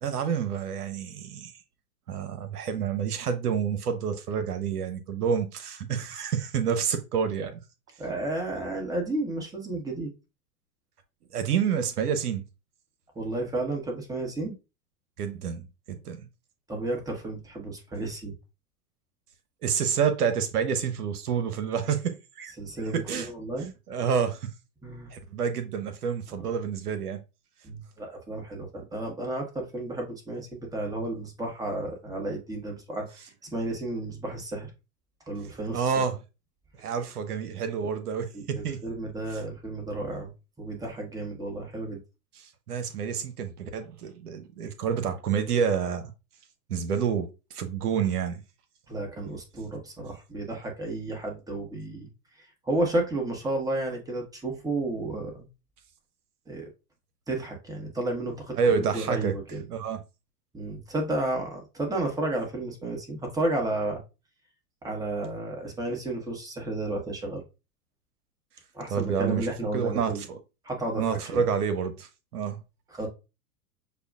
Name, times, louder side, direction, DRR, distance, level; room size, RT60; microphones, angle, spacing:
voice 1, 0.0-1.5 2.1-7.6 11.3-12.4 15.2-16.3 19.6-22.5 22.9-23.3 23.9-24.5 25.1-27.2 35.7-36.2 36.8-38.8 39.3-39.4 42.7-46.1 46.7-48.4 58.6-59.3 59.7-60.0 68.9-70.4 71.0-72.6, right 7 dB, 85° right, 0.8 m, -28 dB
voice 2, 8.0-10.1 13.1-14.6 16.7-18.3 22.6-23.7 24.8-25.1 26.3-26.5 27.6-34.7 35.3-35.9 38.3-40.3 40.6-42.0 48.9-52.1 52.4-55.5 56.5-56.7 57.3-59.6 60.5-64.0 64.8-67.4 68.7-70.2 70.6-71.0 71.3-71.4 72.9-73.1, right 2 dB, 10° right, 1.1 m, -32 dB
6.8 x 2.3 x 2.3 m
hypercardioid pair, 110°, 45 cm